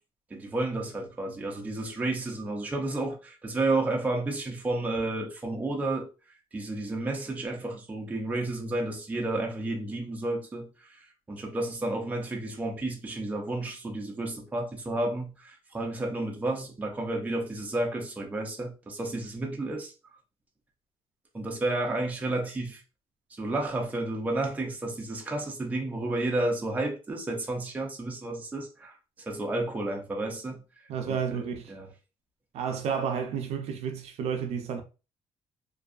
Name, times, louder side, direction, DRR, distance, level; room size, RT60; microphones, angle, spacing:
voice 1, 0.3-6.1 6.5-19.9 21.3-22.8 23.3-28.9 29.3-30.6 31.0-31.9, right 2 dB, 15° right, 0.5 m, -31 dB
voice 2, 30.9-31.7 32.5-34.8, right 7 dB, 70° right, 0.5 m, -31 dB
2.6 x 2.3 x 2.3 m
cardioid pair, 165°, 11 cm